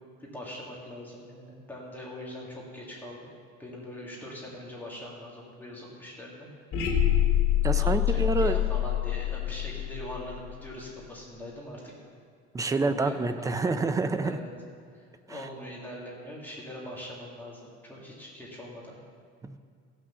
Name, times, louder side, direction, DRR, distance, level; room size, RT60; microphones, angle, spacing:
voice 1, 0.2-3.3 3.6-6.5 7.7-11.9 12.8-13.7 14.2-14.5 14.9-19.0, left 1 dB, 5° left, -5 dB, 1.8 m, -42 dB
sound 1, 6.7-10.8, left 12 dB, 50° left, 2.4 m, -26 dB
voice 2, 7.6-8.6 12.5-14.4 19.4-19.6, right 3 dB, 10° right, 10 dB, 0.3 m, -27 dB
16.5 x 6.1 x 6.8 m, 2.2 s
cardioid pair, 165°, 29 cm